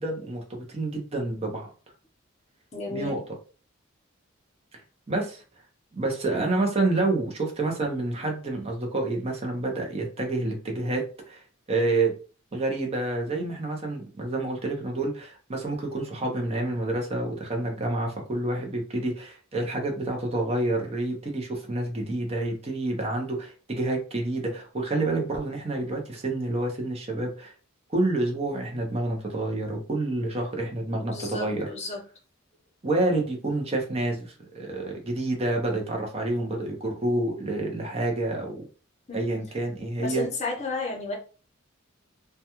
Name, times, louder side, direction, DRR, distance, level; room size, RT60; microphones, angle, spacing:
voice 1, 0.0-1.7 2.9-3.3 4.7-4.8 5.1-5.4 5.9-11.4 11.7-12.2 12.5-27.5 27.9-31.7 32.8-38.6 39.1-40.2, right 2 dB, 30° right, 1 dB, 0.6 m, -28 dB
voice 2, 2.7-3.2 31.1-32.0 39.1-39.3 40.0-41.2, left 3 dB, 35° left, 0 dB, 0.7 m, -32 dB
2.2 x 2.2 x 2.9 m, 0.36 s
head